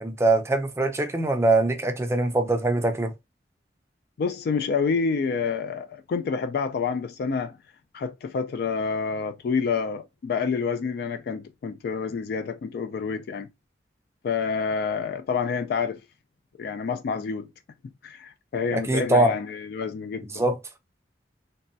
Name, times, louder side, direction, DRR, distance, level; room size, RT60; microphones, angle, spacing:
voice 1, 0.0-3.1 18.7-19.3 20.2-20.6, right 2 dB, 15° right, 0.5 m, -23 dB
voice 2, 4.2-7.6 7.9-13.5 14.2-16.0 16.6-17.5 18.0-20.4, left 5 dB, 60° left, 0.3 m, -28 dB
3.1 x 2.2 x 2.5 m
head